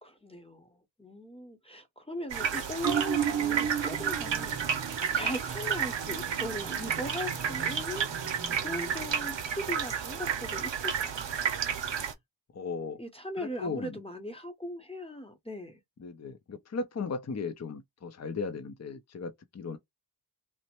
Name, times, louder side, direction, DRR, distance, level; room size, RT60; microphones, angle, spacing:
voice 1, 0.0-4.6 5.1-11.3 13.0-15.8, left 1 dB, 15° left, 0.8 m, -39 dB
sound 1, 2.3-12.1, right 7 dB, 90° right, 0.6 m, -32 dB
sound 2, 2.8-9.7 10.1-10.2, right 8 dB, 50° right, 0.6 m, -36 dB
voice 2, 12.5-13.0 13.4-14.0 16.0-19.8, left 4 dB, 40° left, 0.5 m, -36 dB
3.0 x 2.0 x 2.9 m
wide cardioid pair, 55°, 43 cm